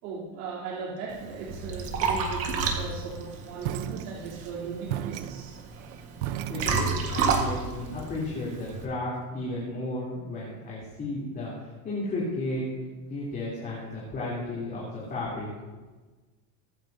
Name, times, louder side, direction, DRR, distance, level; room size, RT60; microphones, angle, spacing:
voice 1, 0.0-5.8 6.3-6.6, right 4 dB, 75° right, -6 dB, 3.5 m, -38 dB
Liquid, 1.1-8.8, right 5 dB, 30° right, 1.6 m, -31 dB
sound 1, 3.6-4.5 4.9-7.3, right 12 dB, 50° right, 0.6 m, -35 dB
voice 2, 6.5-12.7 12.9-15.5, left 2 dB, 20° left, -8 dB, 3.4 m, -33 dB
23.5 x 9.6 x 2.8 m, 1.3 s
supercardioid pair, 175°, 45 cm